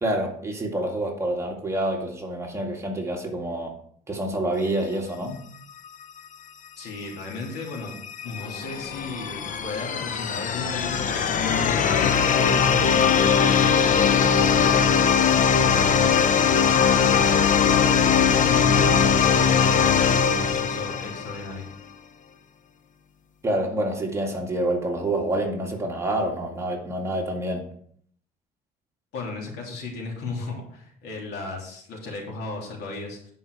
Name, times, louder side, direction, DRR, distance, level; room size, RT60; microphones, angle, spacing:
voice 1, 0.0-3.7 4.1-5.4 23.4-27.6, right 1 dB, 15° right, 0 dB, 2.2 m, -27 dB
voice 2, 6.8-7.9 8.2-17.6 18.3-21.6 29.1-33.3, left 3 dB, 75° left, -1 dB, 3.2 m, -35 dB
sound 1, 7.7-21.5, left 7 dB, 50° left, 0.7 m, -20 dB
10.5 x 5.4 x 4.8 m, 0.62 s
cardioid pair, 110°, 17 cm